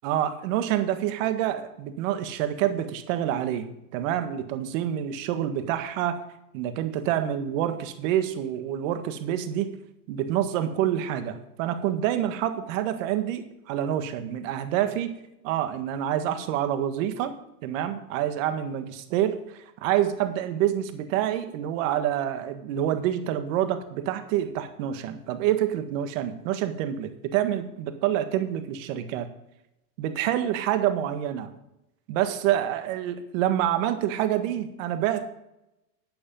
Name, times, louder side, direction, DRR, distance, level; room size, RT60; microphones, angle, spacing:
voice 1, 0.0-6.2 6.5-9.7 10.1-15.2 15.4-29.3 30.0-31.5 32.1-35.3, right 11 dB, 50° right, 9 dB, 1.7 m, -27 dB
12.0 x 8.6 x 5.5 m, 0.86 s
supercardioid pair, 135°, 48 cm